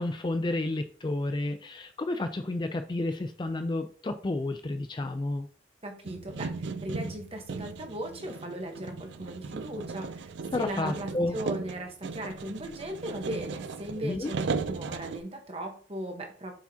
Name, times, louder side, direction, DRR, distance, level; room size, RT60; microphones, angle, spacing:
voice 1, 0.0-5.5 10.5-11.4 14.0-14.3, left 2 dB, 25° left, 8 dB, 0.4 m, -31 dB
voice 2, 5.8-16.5, right 1 dB, 30° right, 3 dB, 1.1 m, -38 dB
sound 1, 6.0-15.2, right 4 dB, 65° right, 0.4 m, -37 dB
7.1 x 4.9 x 2.8 m, 0.43 s
head